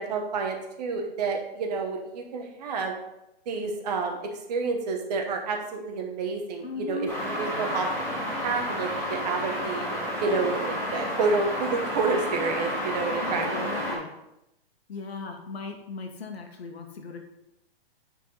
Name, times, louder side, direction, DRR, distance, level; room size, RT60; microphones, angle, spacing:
voice 1, 0.0-2.9 3.5-4.2 4.5-7.1 7.4-9.8 10.2-13.8, right 4 dB, 40° right, 3 dB, 1.3 m, -29 dB
voice 2, 6.6-7.2 13.2-14.1 14.9-17.2, left 4 dB, 80° left, 4 dB, 1.6 m, -37 dB
sound 1, 7.1-14.0, equal, 5° left, 1.9 m, -31 dB
9.1 x 4.7 x 4.1 m, 0.88 s
hypercardioid pair, 165°, 31 cm